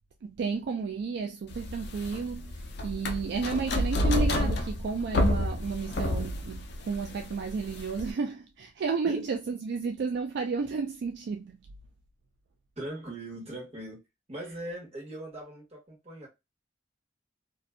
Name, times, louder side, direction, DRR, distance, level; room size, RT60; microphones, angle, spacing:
voice 1, 0.2-11.6, right 4 dB, 60° right, 0.3 m, -32 dB
sound 1, 1.5-8.1, left 1 dB, 60° left, 0.5 m, -29 dB
voice 2, 12.8-14.0 14.3-16.3, right 1 dB, 35° right, 1.4 m, -40 dB
2.5 x 2.4 x 2.2 m
head